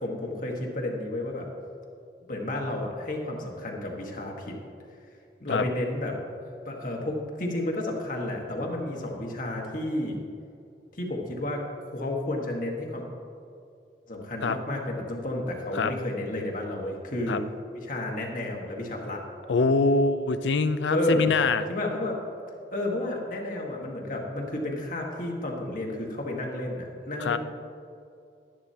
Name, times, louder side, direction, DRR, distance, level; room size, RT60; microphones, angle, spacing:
voice 1, 0.0-1.5 2.3-4.5 5.4-6.2 6.6-10.2 10.9-13.1 14.1-17.4 17.7-19.2 20.9-21.3 21.7-22.2 22.7-27.4, left 1 dB, 50° left, 0 dB, 1.5 m, -31 dB
voice 2, 19.5-21.6 27.2-27.4, left 3 dB, 80° left, 11 dB, 0.5 m, -24 dB
12.0 x 10.5 x 2.8 m, 2.5 s
head